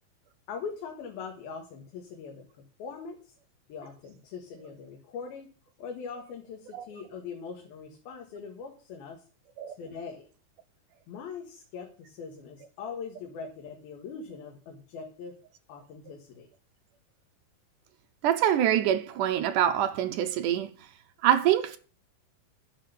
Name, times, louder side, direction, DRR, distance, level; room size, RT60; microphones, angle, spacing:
voice 1, 0.5-3.3 3.7-5.5 5.8-9.2 9.7-10.2 11.1-15.4 15.7-16.5, left 5 dB, 85° left, 3.4 m, -41 dB
voice 2, 18.2-20.7 21.2-21.8, right 11 dB, 75° right, 2.0 m, -25 dB
11.0 x 7.4 x 6.9 m
omnidirectional pair, 4.2 m